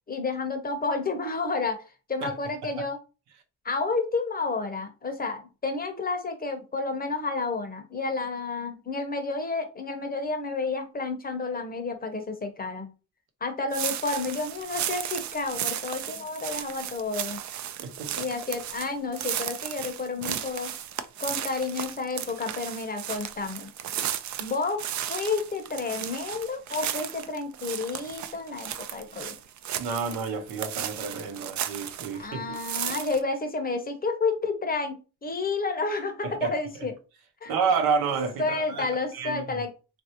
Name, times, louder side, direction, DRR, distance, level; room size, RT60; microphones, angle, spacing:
voice 1, 0.1-1.8 2.1-3.0 3.6-12.9 13.4-17.4 18.2-20.7 21.2-23.7 24.4-24.8 25.1-29.3 32.2-35.0 35.2-36.9 37.4-37.6 38.4-39.7, left 3 dB, 25° left, 0.7 m, -30 dB
sound 1, 13.7-32.2 32.5-33.2, right 10 dB, 55° right, 0.4 m, -35 dB
voice 2, 17.8-18.1 29.8-32.6 36.2-36.5 37.5-38.9 39.1-39.4, right 5 dB, 90° right, 0.8 m, -29 dB
3.1 x 2.6 x 2.7 m
cardioid pair, 85°, 36 cm